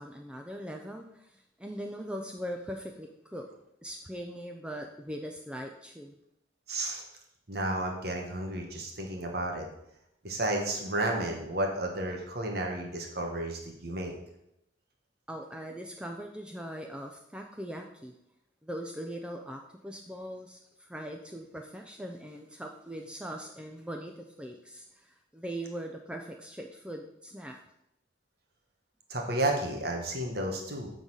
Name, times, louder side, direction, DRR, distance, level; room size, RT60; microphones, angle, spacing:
voice 1, 0.0-3.5 3.8-6.1 15.3-18.1 18.6-27.6, equal, 5° right, 2 dB, 0.5 m, -41 dB
voice 2, 6.7-7.0 7.5-9.7 10.2-14.1 29.1-30.9, right 1 dB, 55° right, 1 dB, 1.4 m, -32 dB
9.2 x 4.0 x 6.2 m, 0.79 s
head